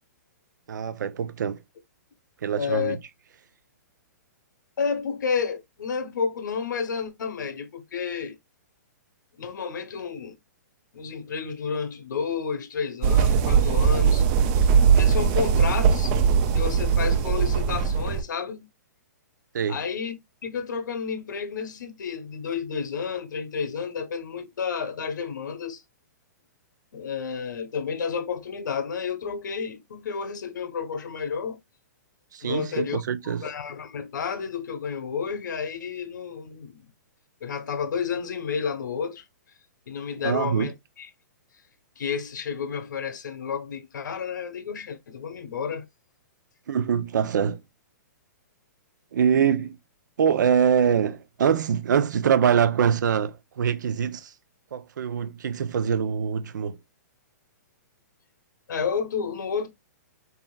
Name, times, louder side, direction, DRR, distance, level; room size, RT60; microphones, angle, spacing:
voice 1, 0.7-1.6 2.4-3.0 19.5-19.8 32.3-33.4 40.2-40.7 46.7-47.6 49.1-49.8 50.2-54.3 54.7-56.8, right 7 dB, 80° right, 0.5 m, -24 dB
voice 2, 2.6-3.0 4.8-8.4 9.4-10.3 10.9-14.3 15.0-16.1 16.5-18.7 19.7-20.1 20.4-25.8 26.9-31.6 32.4-36.8 37.4-39.3 39.9-41.1 42.0-45.9 58.7-59.7, left 6 dB, 85° left, 1.0 m, -31 dB
sound 1, 13.0-18.2, right 6 dB, 25° right, 0.4 m, -20 dB
4.0 x 3.6 x 2.3 m
hypercardioid pair, 165°, 10 cm